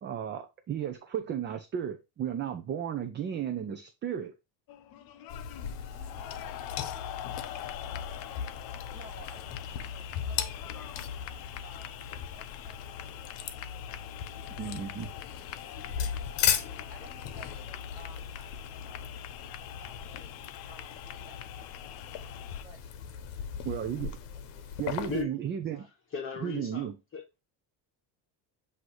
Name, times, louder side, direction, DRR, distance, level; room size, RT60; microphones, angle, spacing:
voice 1, 0.0-4.3 14.5-15.1 23.6-24.2 24.8-25.9 26.4-26.9, right 9 dB, 25° right, 0.5 m, -34 dB
sound 1, 4.7-22.6, left 12 dB, 55° left, 0.6 m, -44 dB
sound 2, 5.3-25.2, left 8 dB, 70° left, 0.9 m, -37 dB
voice 2, 5.9-14.2 14.8-15.0 16.9-22.2 22.6-22.8 23.8-24.1 24.3-24.9 25.7-25.9, right 1 dB, 10° right, 2.8 m, -57 dB
voice 3, 25.0-25.3 26.1-27.2, left 6 dB, 30° left, 1.4 m, -36 dB
7.9 x 2.8 x 4.6 m
cardioid pair, 155°, 44 cm